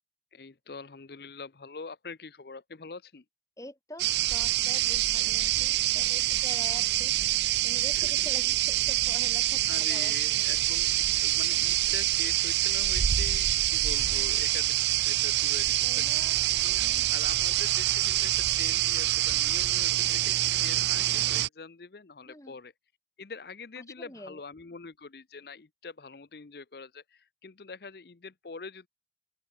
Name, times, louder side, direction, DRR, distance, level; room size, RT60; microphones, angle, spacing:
voice 1, 0.3-3.2 7.9-8.1 9.7-10.9 11.2-22.7 23.2-28.9, left 4 dB, 60° left, 0.7 m, -44 dB
voice 2, 3.6-10.5 15.8-16.4 16.8-17.1 22.3-22.6 23.8-24.4, left 1 dB, 20° left, 3.0 m, -46 dB
sound 1, 4.0-21.5, right 15 dB, 75° right, 0.5 m, -26 dB
open air
head